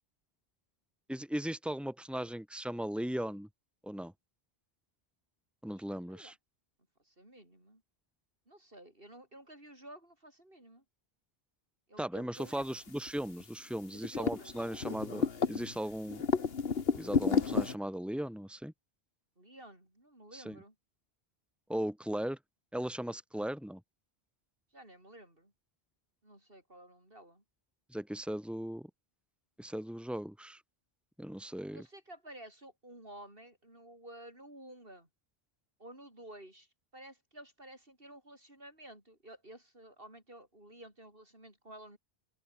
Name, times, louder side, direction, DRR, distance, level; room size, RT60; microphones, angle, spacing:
voice 1, 1.1-3.5 3.8-4.1 5.6-6.3 12.0-16.2 17.0-18.7 20.3-20.6 21.7-22.4 22.7-23.8 27.9-28.9 29.6-30.6 31.2-31.8, right 1 dB, ahead, 3.8 m, -37 dB
voice 2, 7.0-7.8 8.5-10.8 11.9-12.8 13.9-14.7 19.4-20.7 24.7-25.5 26.2-27.4 31.7-35.1 35.8-42.0, right 1 dB, 60° right, 8.1 m, -52 dB
sound 1, 12.6-12.7 12.9-13.4 13.8-15.8 16.1-17.7, left 5 dB, 70° left, 1.7 m, -31 dB
open air
omnidirectional pair, 1.0 m